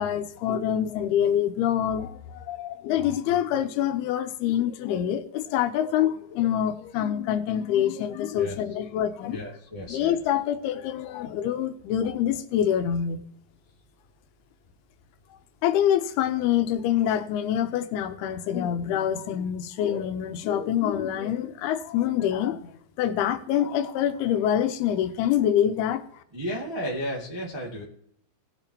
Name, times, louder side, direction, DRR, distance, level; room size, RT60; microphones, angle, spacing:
voice 1, 0.0-9.4 9.9-13.2 15.6-26.0, left 10 dB, 90° left, 9 dB, 2.8 m, -26 dB
voice 2, 9.3-10.1 26.3-27.8, equal, 25° right, -2 dB, 0.5 m, -33 dB
18.0 x 7.1 x 2.8 m, 0.71 s
omnidirectional pair, 4.5 m